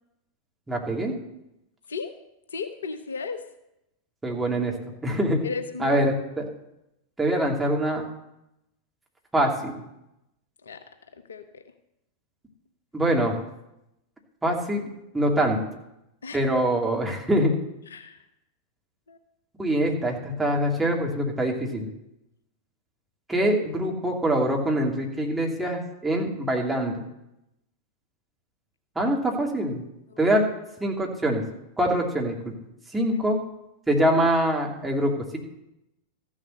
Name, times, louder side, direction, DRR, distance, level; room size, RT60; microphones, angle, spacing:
voice 1, 0.7-1.1 4.2-4.7 5.0-5.4 5.8-6.4 7.2-8.1 9.3-9.8 12.9-13.4 14.4-15.6 16.3-17.5 19.6-21.9 23.3-27.0 29.0-29.8 30.2-30.5 30.8-31.4 31.8-32.5 32.9-33.4 33.9-35.4, right 1 dB, 10° right, 0 dB, 2.7 m, -24 dB
voice 2, 2.5-3.4 5.4-6.0 10.6-10.8 11.1-11.6 16.2-16.4 17.9-18.2 19.1-19.2 30.1-30.2 33.1-33.2, left 5 dB, 70° left, 9 dB, 0.9 m, -35 dB
14.0 x 7.4 x 6.6 m, 0.86 s
figure-of-eight pair, 90°, 0 cm